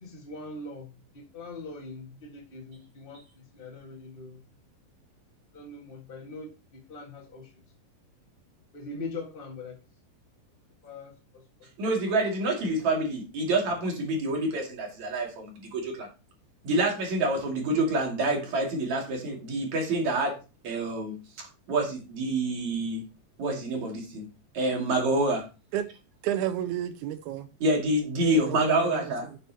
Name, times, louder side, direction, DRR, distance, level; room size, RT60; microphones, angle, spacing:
voice 1, 0.0-4.4 5.5-6.5 6.9-7.5 8.7-9.8 10.8-11.1, left 3 dB, 35° left, -1 dB, 0.8 m, -41 dB
voice 2, 11.8-16.1 16.6-20.4 20.6-21.2 21.7-23.0 23.4-24.2 24.5-25.4 27.6-29.3, right 2 dB, 55° right, 0 dB, 3.6 m, -27 dB
voice 3, 26.2-27.5 28.2-29.4, right 11 dB, 85° right, 11 dB, 1.8 m, -32 dB
11.5 x 6.8 x 2.9 m, 0.30 s
omnidirectional pair, 4.1 m